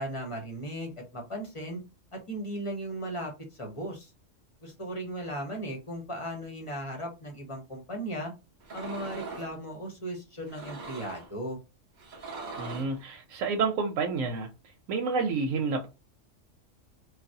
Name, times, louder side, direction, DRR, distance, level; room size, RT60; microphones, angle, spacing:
voice 1, 0.0-1.8 2.1-3.3 3.6-4.1 4.6-8.3 8.7-11.6, right 1 dB, 30° left, 0.8 m, -36 dB
sound 1, 8.6-9.6 10.4-11.3 12.0-13.0, right 3 dB, 45° right, 0.6 m, -41 dB
voice 2, 12.6-14.5 14.9-15.9, right 4 dB, 90° right, 1.0 m, -29 dB
3.2 x 2.2 x 2.6 m
omnidirectional pair, 1.3 m